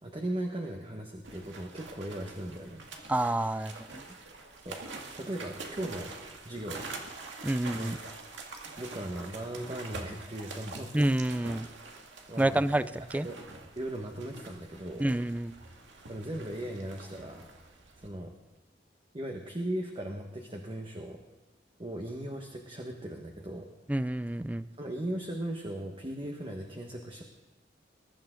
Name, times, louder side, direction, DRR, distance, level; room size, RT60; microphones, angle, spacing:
voice 1, 0.0-2.8 4.6-4.8 5.1-6.1 6.4-6.9 7.7-7.9 8.8-10.9 12.3-12.9 13.2-13.4 13.8-15.1 16.1-17.5 18.0-18.3 19.1-21.2 21.8-23.7 24.8-27.2, right 1 dB, 30° right, 1 dB, 1.4 m, -38 dB
sound 1, 1.2-18.1, right 3 dB, 85° right, 2.2 m, -45 dB
voice 2, 3.1-4.0 7.4-8.0 10.9-11.7 12.4-13.3 15.0-15.5 23.9-24.7, right 1 dB, 10° right, 15 dB, 0.4 m, -28 dB
22.0 x 12.0 x 3.8 m, 1.2 s
head